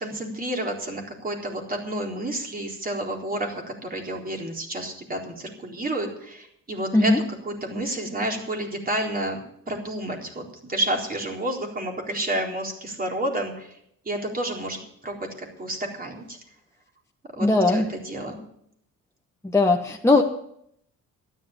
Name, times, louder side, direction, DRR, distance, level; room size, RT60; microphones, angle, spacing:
voice 1, 0.0-7.1 7.4-9.4 9.7-13.8 14.1-16.4 17.3-18.4, right 1 dB, 30° right, 1 dB, 4.0 m, -30 dB
voice 2, 17.4-17.9 19.4-20.2, left 2 dB, 10° left, 1 dB, 1.3 m, -19 dB
12.5 x 11.0 x 7.3 m, 0.70 s
cardioid pair, 90°, 30 cm